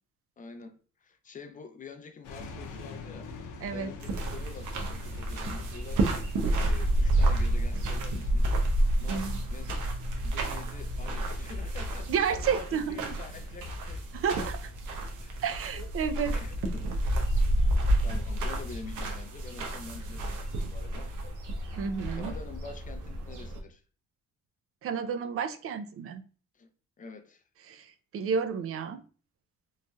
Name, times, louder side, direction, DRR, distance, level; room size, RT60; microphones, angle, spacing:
voice 1, 0.4-3.3 3.7-6.3 6.5-8.5 9.0-14.0 14.4-14.5 15.2-15.4 16.3-16.9 18.0-21.1 22.2-23.8 26.5-26.7 27.0-27.4, left 4 dB, 25° left, 0.5 m, -47 dB
sound 1, 2.2-13.7, left 2 dB, 85° left, 0.6 m, -46 dB
voice 2, 3.6-3.9 9.1-9.4 12.1-13.0 14.1-14.6 15.4-16.4 21.8-22.3 24.8-26.2 27.7-27.9 28.1-29.0, right 6 dB, 50° right, 0.4 m, -31 dB
sound 2, 4.0-23.6, right 1 dB, 80° right, 0.7 m, -30 dB
3.1 x 2.6 x 2.2 m
cardioid pair, 90°, 30 cm